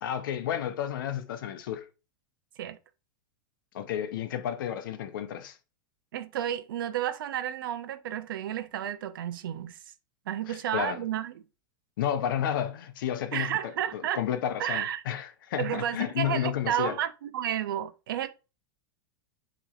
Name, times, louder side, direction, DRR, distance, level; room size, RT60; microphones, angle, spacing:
voice 1, 0.0-1.9 3.7-5.6 10.5-11.0 12.0-13.6 13.9-17.0, left 10 dB, 75° left, 0.7 m, -31 dB
voice 2, 6.1-9.8 10.3-11.3 13.3-14.2 14.6-15.0 15.6-18.3, right 11 dB, 85° right, 0.6 m, -31 dB
6.9 x 3.1 x 2.4 m
supercardioid pair, 130°, 11 cm